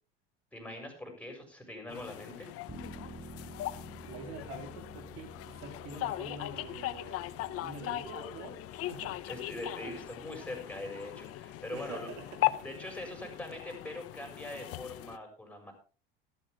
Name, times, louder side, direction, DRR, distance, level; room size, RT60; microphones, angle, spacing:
voice 1, 0.5-2.5 9.3-12.1 12.6-15.7, left 1 dB, 5° left, 3 dB, 6.8 m, -42 dB
sound 1, 1.9-15.2, left 16 dB, 50° left, 0.9 m, -39 dB
sound 2, 2.7-13.4, right 4 dB, 20° right, 1.9 m, -53 dB
voice 2, 4.1-9.2 9.8-10.0 11.7-12.5 13.2-13.3, right 3 dB, 60° right, 4 dB, 3.5 m, -46 dB
14.0 x 13.0 x 3.6 m, 0.37 s
hypercardioid pair, 85°, 30 cm